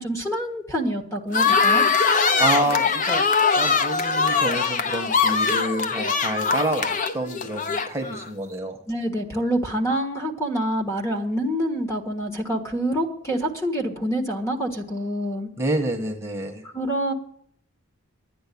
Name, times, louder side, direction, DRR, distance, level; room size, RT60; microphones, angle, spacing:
voice 1, 0.0-1.8 5.9-6.2 8.9-15.5 16.6-17.1, right 1 dB, 15° left, 3 dB, 1.4 m, -26 dB
sound 1, 1.3-8.2, left 5 dB, 35° left, 0.6 m, -22 dB
voice 2, 2.4-3.2 3.6-8.8 15.6-16.6, right 1 dB, 10° right, 1 dB, 1.2 m, -28 dB
11.5 x 9.7 x 8.4 m, 0.67 s
head